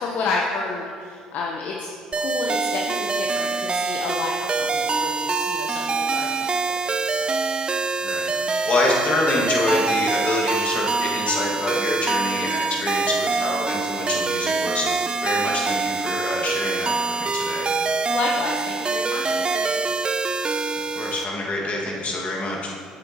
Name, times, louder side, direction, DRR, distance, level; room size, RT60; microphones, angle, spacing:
voice 1, 0.0-6.6 7.2-7.3 18.1-19.9, left 3 dB, 60° left, -2 dB, 0.8 m, -30 dB
sound 1, 2.1-21.2, right 4 dB, 30° right, 0.4 m, -25 dB
voice 2, 8.0-8.3 8.7-17.7 20.9-22.7, left 2 dB, 40° left, -3 dB, 1.7 m, -26 dB
7.8 x 6.8 x 2.9 m, 2.1 s
hypercardioid pair, 60°, 3 cm